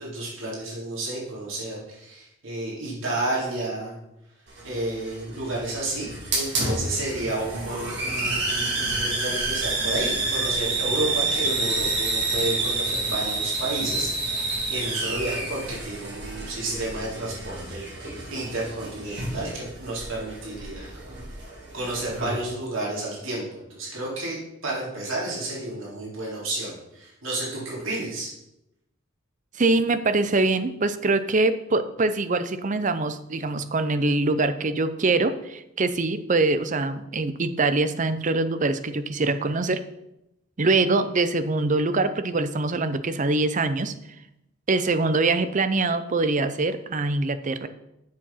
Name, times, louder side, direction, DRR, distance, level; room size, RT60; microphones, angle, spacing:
voice 1, 0.0-4.0 4.6-14.4 14.7-21.1 21.7-24.4 24.6-28.3, right 2 dB, 75° right, -5 dB, 3.8 m, -31 dB
Hiss, 4.5-22.4, right 3 dB, 60° right, 3.5 m, -29 dB
voice 2, 29.6-39.8 40.6-43.9 44.7-47.7, right 3 dB, 40° right, 11 dB, 0.6 m, -23 dB
7.5 x 6.8 x 5.7 m, 0.87 s
head